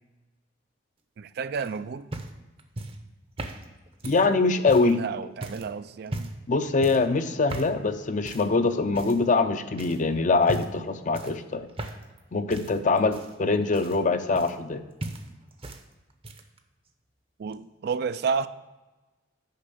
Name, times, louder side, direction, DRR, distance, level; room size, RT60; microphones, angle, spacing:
voice 1, 1.2-2.1 4.3-4.4 4.8-6.3 17.4-18.5, right 5 dB, 60° right, 13 dB, 0.4 m, -31 dB
sound 1, 1.5-5.0 5.4-5.7 6.1-6.5 6.8-7.1 7.5-7.8 8.2-8.5 8.9-9.4 9.8-10.0 10.4-10.8 11.1-12.2 12.5-14.7 15.0-15.8 16.1-16.6 17.5-17.6, right 1 dB, 30° right, 0.7 m, -38 dB
voice 2, 4.0-5.0 6.5-11.7 12.3-14.8, left 3 dB, 45° left, 9 dB, 0.5 m, -23 dB
6.7 x 5.3 x 6.7 m, 1.1 s
head